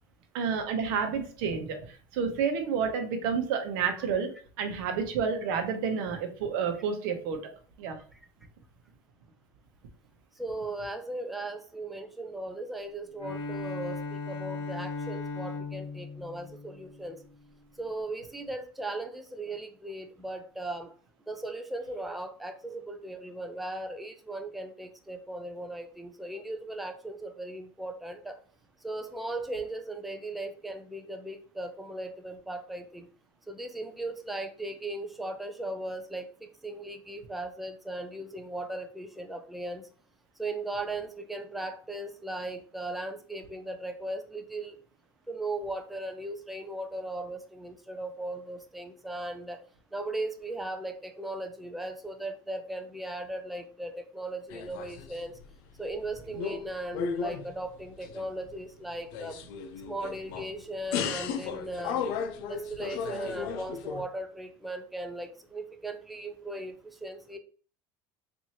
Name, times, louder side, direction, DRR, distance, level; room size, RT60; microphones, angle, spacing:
voice 1, 0.3-4.3 4.6-7.5 7.8-8.0, right 6 dB, 85° right, 5 dB, 0.9 m, -30 dB
voice 2, 10.4-17.2 17.8-20.9 21.3-28.4 28.8-33.1 33.5-36.3 36.6-39.9 40.4-44.8 45.3-49.6 49.9-55.4 55.8-59.4 59.9-62.0 62.5-67.4, right 2 dB, ahead, 5 dB, 0.4 m, -37 dB
Bowed string instrument, 13.1-17.5, left 3 dB, 55° left, 0.8 m, -38 dB
sound 1, 54.5-55.5 55.9-56.7 56.9-58.5 59.0-60.5 60.9-64.0, left 6 dB, 85° left, 0.5 m, -35 dB
4.3 x 2.6 x 2.8 m, 0.41 s
cardioid pair, 135°, 11 cm